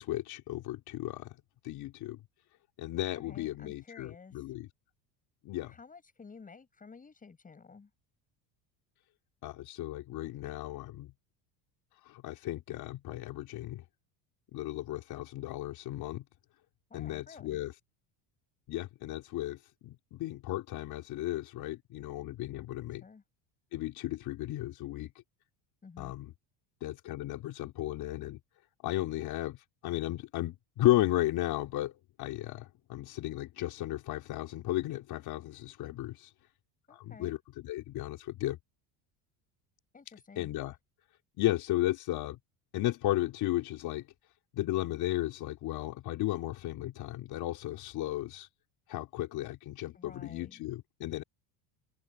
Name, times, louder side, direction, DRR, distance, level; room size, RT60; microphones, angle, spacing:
voice 1, 0.0-1.4 1.6-2.2 2.8-4.7 5.4-5.8 9.4-11.1 12.0-13.8 14.5-16.2 16.9-17.7 18.7-23.0 23.7-25.1 26.0-26.3 26.8-28.4 28.8-31.9 32.2-36.3 36.9-38.6 40.4-40.8 41.4-42.4 42.7-44.1 44.5-48.5 48.9-51.2, left 15 dB, 50° left, 3.6 m, -34 dB
voice 2, 3.1-4.5 5.6-7.9 16.9-17.6 23.0-23.2 25.8-26.1 36.9-37.4 39.9-40.5 49.9-50.6, left 5 dB, 15° left, 7.3 m, -52 dB
open air
cardioid pair, 155°, 48 cm